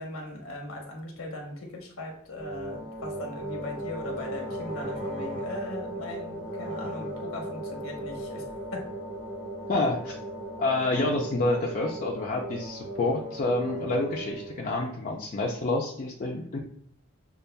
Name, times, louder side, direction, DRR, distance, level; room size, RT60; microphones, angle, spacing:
voice 1, 0.0-8.4 8.7-8.9, left 1 dB, 75° left, 1 dB, 0.9 m, -39 dB
sound 1, 2.3-14.6, right 1 dB, 45° right, 1.4 m, -37 dB
voice 2, 9.7-10.2 10.6-16.6, left 2 dB, 40° left, -1 dB, 0.5 m, -28 dB
6.6 x 2.3 x 2.2 m, 0.64 s
head